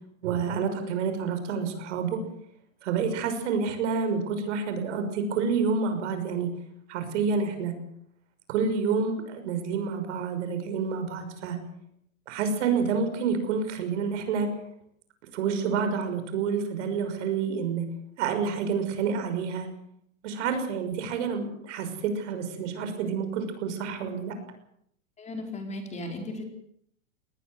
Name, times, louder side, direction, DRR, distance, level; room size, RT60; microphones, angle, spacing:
voice 1, 0.2-2.2 2.8-6.5 6.9-7.7 8.5-11.6 12.3-14.5 15.3-17.9 18.2-19.7 20.2-24.4, right 5 dB, 60° right, 8 dB, 6.2 m, -28 dB
voice 2, 25.2-26.4, left 1 dB, 15° left, 4 dB, 4.5 m, -36 dB
21.0 x 19.5 x 8.0 m, 0.70 s
hypercardioid pair, 135°, 40 cm